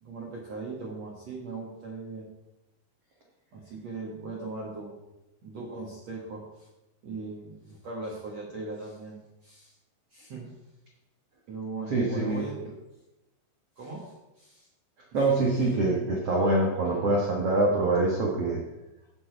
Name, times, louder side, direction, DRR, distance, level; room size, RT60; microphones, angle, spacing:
voice 1, 0.0-2.3 3.5-4.9 5.4-6.7 7.0-9.2 9.4-9.7 10.1-10.5 11.5-12.7 13.8-14.7, right 3 dB, 60° right, -3 dB, 1.8 m, -39 dB
voice 2, 11.9-12.4 15.1-18.6, right 2 dB, 90° right, -2 dB, 1.3 m, -25 dB
16.5 x 6.8 x 4.7 m, 0.97 s
omnidirectional pair, 5.3 m